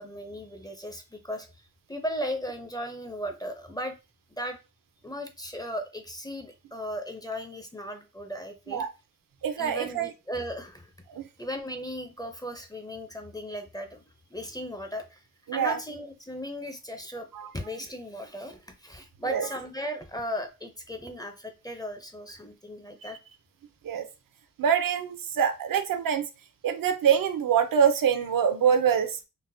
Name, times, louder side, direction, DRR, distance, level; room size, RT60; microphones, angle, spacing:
voice 1, 0.0-1.5 1.9-3.9 4.3-4.6 5.0-8.8 9.6-10.9 11.4-14.0 14.3-15.2 15.5-17.3 17.5-23.2, equal, 10° left, 5 dB, 0.5 m, -36 dB
voice 2, 9.4-10.1 11.1-11.3 15.5-15.8 17.3-17.5 19.3-19.5 23.0-23.1 23.8-24.0 24.6-26.3 26.6-29.2, right 8 dB, 75° right, 8 dB, 0.5 m, -25 dB
3.9 x 2.0 x 2.6 m, 0.28 s
wide cardioid pair, 115°, 34 cm